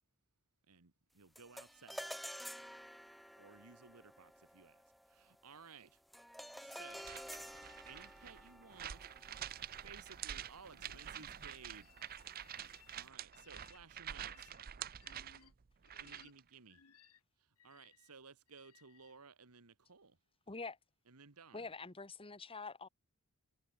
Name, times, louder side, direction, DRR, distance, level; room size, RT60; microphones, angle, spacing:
voice 1, 0.7-2.1 3.4-4.8 5.1-6.0 6.6-7.1 7.9-9.1 9.8-11.9 12.6-14.5 16.0-16.8 17.6-20.2 21.1-21.7, right 5 dB, 80° right, 1.6 m, -58 dB
sound 1, 1.4-10.8, equal, ahead, 0.7 m, -51 dB
sound 2, 6.9-16.4, right 10 dB, 40° right, 0.5 m, -48 dB
voice 2, 10.7-11.5 12.0-13.0 13.3-13.8 14.1-14.6 15.0-15.5 15.8-16.3 16.7-17.2 17.6-18.0, left 7 dB, 80° left, 1.5 m, -64 dB
voice 3, 20.5-20.8 21.5-22.9, left 4 dB, 25° left, 1.5 m, -46 dB
head